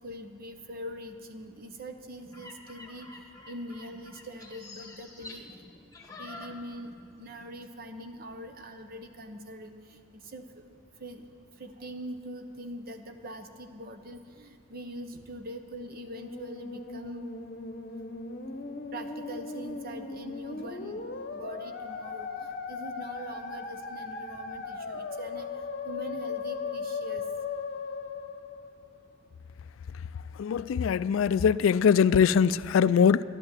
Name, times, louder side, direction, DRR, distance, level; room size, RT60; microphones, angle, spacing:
voice 1, 0.0-3.1 3.5-5.6 6.2-10.7 11.0-11.3 11.6-17.6 18.9-27.2, equal, 50° right, 7 dB, 1.0 m, -43 dB
sound 1, 2.2-7.1 7.4-7.7, left 2 dB, 15° left, 1.4 m, -47 dB
Musical instrument, 15.8-29.2, left 4 dB, 45° left, 0.9 m, -38 dB
voice 2, 30.4-33.2, left 7 dB, 75° left, 17 dB, 0.3 m, -22 dB
11.5 x 11.5 x 7.6 m, 2.3 s
head